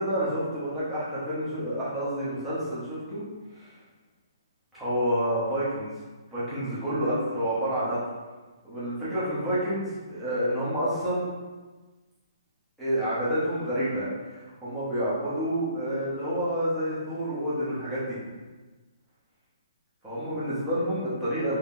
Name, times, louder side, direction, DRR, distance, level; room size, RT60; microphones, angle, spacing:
voice 1, 0.0-3.2 3.5-3.7 4.7-5.9 6.3-8.0 8.6-11.3 12.8-18.2 20.0-21.6, equal, 5° right, -12 dB, 0.8 m, -29 dB
2.8 x 2.7 x 3.6 m, 1.3 s
hypercardioid pair, 175°, 2 cm